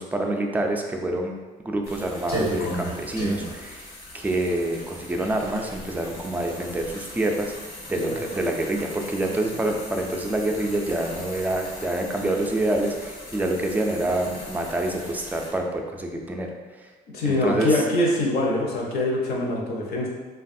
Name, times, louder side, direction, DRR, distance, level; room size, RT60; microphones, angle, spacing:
voice 1, 0.0-1.4 1.7-3.9 4.1-7.5 7.9-16.5 17.2-17.8, right 1 dB, 10° right, 2 dB, 0.3 m, -26 dB
sound 1, 1.8-15.5, equal, 85° left, 1.3 m, -37 dB
voice 2, 17.1-20.1, left 1 dB, 70° left, -1 dB, 0.7 m, -24 dB
3.3 x 2.3 x 2.5 m, 1.3 s
cardioid pair, 110°, 17 cm